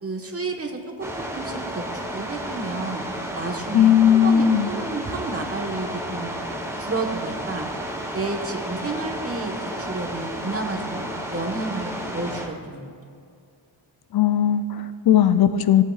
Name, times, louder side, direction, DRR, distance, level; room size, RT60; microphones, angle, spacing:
voice 1, 0.0-1.8 2.1-3.0 3.3-6.3 6.8-7.7 8.1-12.8, right 3 dB, 30° right, 2 dB, 1.2 m, -31 dB
sound 1, 1.0-12.5, right 1 dB, 5° right, 1.2 m, -32 dB
voice 2, 3.7-4.7 14.1-15.8, left 9 dB, 55° left, 12 dB, 0.5 m, -17 dB
16.5 x 8.7 x 2.4 m, 2.4 s
wide cardioid pair, 110°, 47 cm